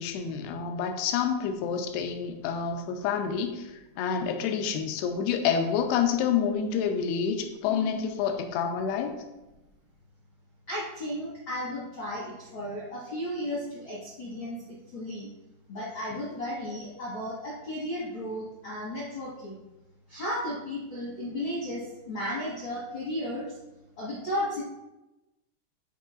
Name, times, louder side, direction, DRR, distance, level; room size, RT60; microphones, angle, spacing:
voice 1, 0.0-9.2, left 7 dB, 80° left, 5 dB, 2.5 m, -28 dB
voice 2, 10.7-15.3 15.7-19.6 20.1-23.6 24.0-24.6, left 1 dB, 60° left, -8 dB, 1.3 m, -34 dB
13.0 x 4.7 x 2.5 m, 1.0 s
omnidirectional pair, 5.0 m